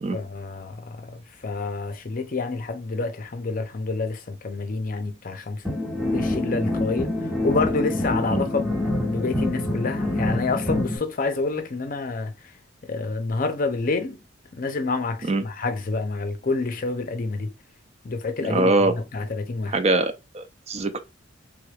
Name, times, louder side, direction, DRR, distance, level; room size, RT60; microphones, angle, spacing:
voice 1, 0.1-5.7 6.0-8.8 9.0-12.3 12.9-14.2 14.5-17.5 18.0-19.8, left 3 dB, 45° left, 0.5 m, -28 dB
sound 1, 5.6-11.0, left 1 dB, ahead, 1.4 m, -26 dB
voice 2, 18.4-18.9 19.7-21.0, right 2 dB, 30° right, 0.4 m, -23 dB
3.4 x 3.3 x 2.3 m
head